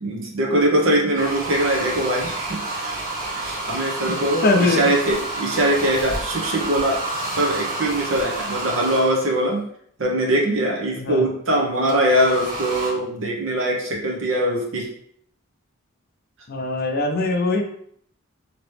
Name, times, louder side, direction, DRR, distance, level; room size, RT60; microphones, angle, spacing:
voice 1, 0.0-2.9 3.4-7.0 7.4-9.6 10.0-14.9, right 1 dB, 65° right, -1 dB, 0.8 m, -22 dB
sound 1, 1.1-9.5 11.9-12.9, right 2 dB, 40° right, 1.0 m, -29 dB
voice 2, 4.4-4.8 11.0-11.2 16.5-17.6, left 3 dB, 45° left, 4 dB, 0.4 m, -21 dB
2.9 x 2.9 x 3.2 m, 0.65 s
head